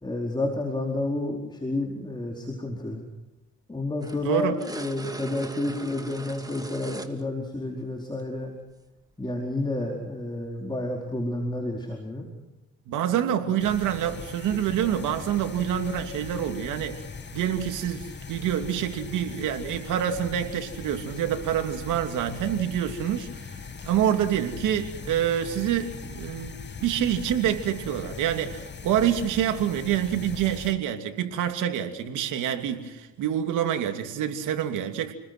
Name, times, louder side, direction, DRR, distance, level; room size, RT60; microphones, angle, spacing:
voice 1, 0.0-3.0 3.7-8.5 9.2-12.3 13.3-13.4, left 2 dB, 15° left, 1 dB, 4.7 m, -30 dB
sound 1, 4.0-7.3 8.2-8.3 10.0-10.1, right 2 dB, 10° right, 2.4 m, -40 dB
voice 2, 4.2-4.6 12.9-17.1 17.3-23.6 23.8-26.5 26.8-35.1, right 10 dB, 90° right, 6 dB, 2.8 m, -27 dB
sound 2, 13.6-30.7, left 5 dB, 35° left, 2.0 m, -40 dB
30.0 x 21.0 x 6.2 m, 1.0 s
cardioid pair, 90°, 30 cm